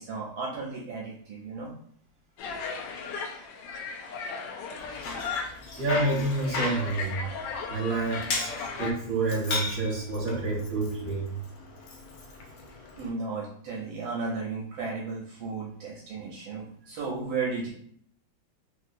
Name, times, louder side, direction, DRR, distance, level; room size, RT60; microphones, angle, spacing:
voice 1, 0.0-1.7 13.0-17.7, right 4 dB, 75° right, -4 dB, 1.4 m, -34 dB
sound 1, 2.4-8.9, left 5 dB, 70° left, 1.1 m, -37 dB
Bicycle, 4.8-13.1, left 3 dB, 90° left, 1.5 m, -37 dB
voice 2, 5.8-7.2 7.7-11.5, right 2 dB, 40° right, -6 dB, 1.6 m, -29 dB
3.6 x 2.7 x 2.5 m, 0.64 s
omnidirectional pair, 2.2 m